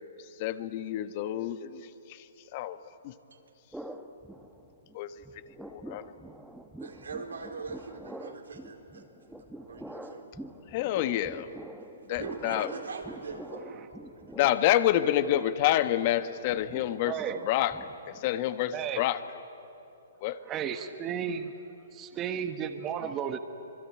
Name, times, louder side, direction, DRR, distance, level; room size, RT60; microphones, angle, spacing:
voice 1, 0.4-2.3 2.5-2.8 3.0-3.1 4.9-5.1 5.7-6.0 10.7-11.5 12.1-12.7 14.3-17.2 17.4-17.8 18.1-19.2 20.2-20.4, left 13 dB, 45° left, 11 dB, 1.2 m, -28 dB
sound 1, 3.7-5.0 5.2-18.4, right 1 dB, ahead, 1.4 m, -45 dB
voice 2, 6.8-10.3 11.8-14.5, right 4 dB, 80° right, 2 dB, 4.1 m, -42 dB
voice 3, 17.0-17.5 18.7-19.0 20.4-21.5 21.9-23.4, right 8 dB, 25° right, 7 dB, 1.4 m, -33 dB
25.5 x 22.5 x 9.7 m, 2.9 s
hypercardioid pair, 130°, 0 cm